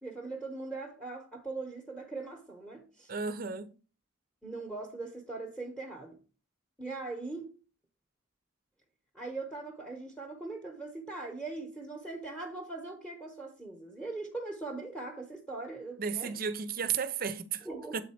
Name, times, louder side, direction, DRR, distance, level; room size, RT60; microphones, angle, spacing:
voice 1, 0.0-3.1 4.4-6.2 6.8-7.5 9.1-16.3 17.6-18.0, right 3 dB, 5° left, 0.9 m, -40 dB
voice 2, 3.1-3.7 16.0-17.7 17.9-18.0, right 6 dB, 45° right, 0.5 m, -33 dB
7.7 x 4.2 x 4.2 m
head